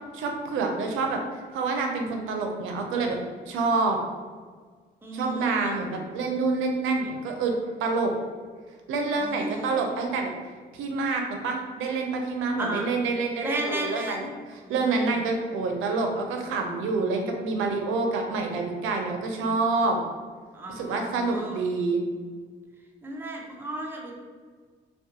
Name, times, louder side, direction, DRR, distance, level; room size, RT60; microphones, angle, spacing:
voice 1, 0.1-1.2 1.5-3.2 3.5-4.0 5.1-8.1 8.9-10.3 10.7-20.0 20.7-22.0, right 3 dB, 90° right, 3 dB, 0.5 m, -27 dB
voice 2, 5.0-5.9 9.1-9.9 12.6-13.0 13.4-14.3 14.6-14.7 20.5-21.6 23.0-24.1, right 1 dB, 10° right, -1 dB, 0.5 m, -34 dB
2.4 x 2.2 x 2.7 m, 1.5 s
cardioid pair, 90°, 20 cm